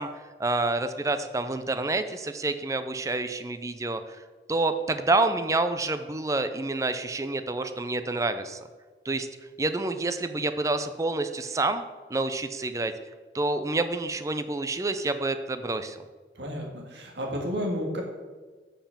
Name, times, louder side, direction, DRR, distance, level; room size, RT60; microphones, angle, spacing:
voice 1, 0.0-4.2 4.5-8.6 9.0-9.3 9.6-11.8 12.1-12.9 13.3-16.0, right 2 dB, 20° right, 10 dB, 0.4 m, -28 dB
voice 2, 16.3-18.0, equal, 85° right, 0 dB, 1.9 m, -31 dB
6.9 x 5.5 x 7.2 m, 1.4 s
head